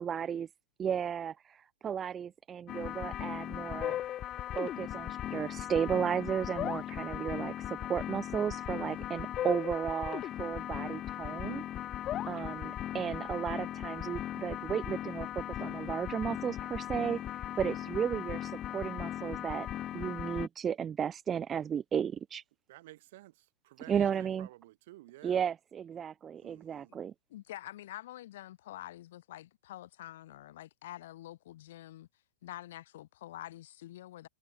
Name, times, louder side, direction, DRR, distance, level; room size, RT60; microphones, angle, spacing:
voice 1, 0.0-0.5 0.8-4.0 4.6-11.6 12.3-17.2 17.6-19.7 19.9-22.4 23.9-24.5 25.2-27.1, right 8 dB, 20° right, 0.7 m, -34 dB
sound 1, 2.7-20.5, left 12 dB, 30° left, 0.4 m, -38 dB
voice 2, 8.9-9.4 16.9-17.3 17.8-17.9 22.7-23.3 23.6-25.4 26.4-26.9, right 17 dB, 55° right, 4.0 m, -53 dB
voice 3, 27.3-32.1 32.4-34.3, left 14 dB, 65° left, 5.5 m, -47 dB
hypercardioid pair, 120°, 0 cm